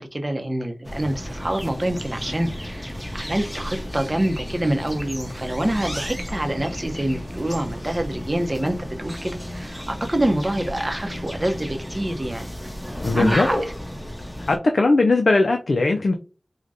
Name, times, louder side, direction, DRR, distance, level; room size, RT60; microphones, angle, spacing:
voice 1, 0.0-12.5 13.1-13.6, right 1 dB, 30° right, 0.7 m, -26 dB
sound 1, 0.8-14.6, equal, 10° left, 0.9 m, -32 dB
voice 2, 13.0-13.5 14.5-16.1, left 3 dB, 80° left, 0.3 m, -19 dB
4.7 x 2.2 x 2.6 m
cardioid pair, 45°, 0 cm